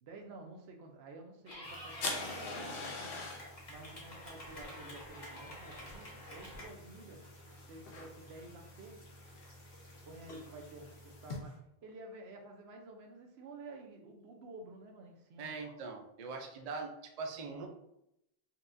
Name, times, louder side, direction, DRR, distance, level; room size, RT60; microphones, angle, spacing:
voice 1, 0.0-7.2 7.7-9.0 10.0-15.6, right 2 dB, 85° right, 2 dB, 0.9 m, -51 dB
Clapping / Cheering, 1.5-6.6, left 1 dB, 45° left, 1.0 m, -49 dB
sound 1, 1.6-11.4, left 3 dB, 65° left, 0.8 m, -46 dB
Stream, 1.9-11.6, equal, 90° left, 1.4 m, -62 dB
voice 2, 15.4-17.7, right 4 dB, 50° right, 3 dB, 0.5 m, -42 dB
4.2 x 2.3 x 2.5 m, 0.81 s
omnidirectional pair, 1.0 m